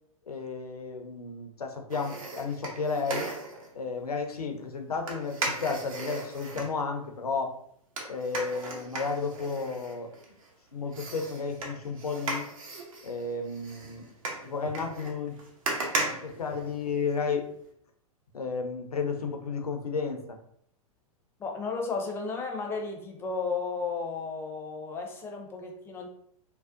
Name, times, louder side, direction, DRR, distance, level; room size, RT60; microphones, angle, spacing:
voice 1, 0.3-3.3 3.7-7.6 8.0-10.1 10.7-12.5 13.0-14.1 14.4-15.4 16.2-17.5 18.3-20.4, left 4 dB, 85° left, 5 dB, 0.5 m, -32 dB
sound 1, 1.9-3.7 5.1-6.7 8.0-10.5 10.9-17.1 17.5-17.6, right 2 dB, 65° right, 0.7 m, -36 dB
voice 2, 21.4-26.1, left 4 dB, 15° left, 2 dB, 0.4 m, -33 dB
2.6 x 2.1 x 2.4 m, 0.66 s
figure-of-eight pair, 105°, 19 cm